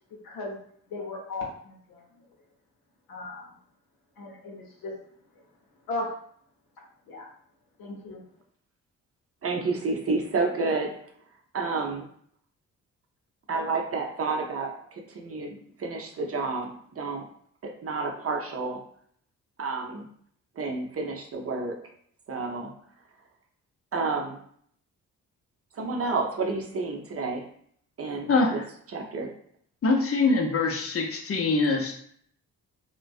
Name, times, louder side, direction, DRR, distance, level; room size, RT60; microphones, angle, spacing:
voice 1, 0.2-0.6 0.9-2.0 3.1-3.5 4.2-4.9 5.9-6.2 7.1-7.3 7.8-8.2, left 2 dB, 75° left, -1 dB, 0.8 m, -36 dB
voice 2, 9.4-11.0 11.5-12.1 13.5-17.3 17.6-18.8 19.6-20.1 20.6-21.8 22.3-22.7 23.9-24.4 25.7-27.4 28.0-28.6 28.9-29.3, right 3 dB, 40° right, 2 dB, 0.6 m, -30 dB
voice 3, 28.3-28.6 29.8-32.0, left 3 dB, 40° left, 2 dB, 0.6 m, -24 dB
2.4 x 2.2 x 2.3 m, 0.62 s
hypercardioid pair, 45°, 36 cm